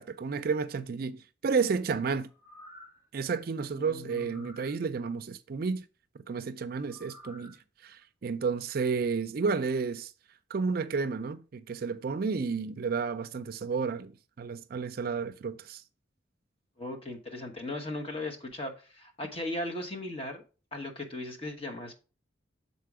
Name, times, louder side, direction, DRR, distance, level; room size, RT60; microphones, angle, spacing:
voice 1, 0.0-2.3 3.1-5.8 6.3-7.6 7.8-10.1 10.5-15.8, right 5 dB, 55° right, 0.4 m, -31 dB
sound 1, 2.3-3.1 4.1-4.8 6.9-7.5 8.0-8.1, left 1 dB, 15° right, 1.2 m, -52 dB
voice 2, 3.7-4.5 16.8-20.4 20.7-22.0, left 1 dB, 30° left, 1.1 m, -37 dB
6.7 x 4.1 x 4.8 m
head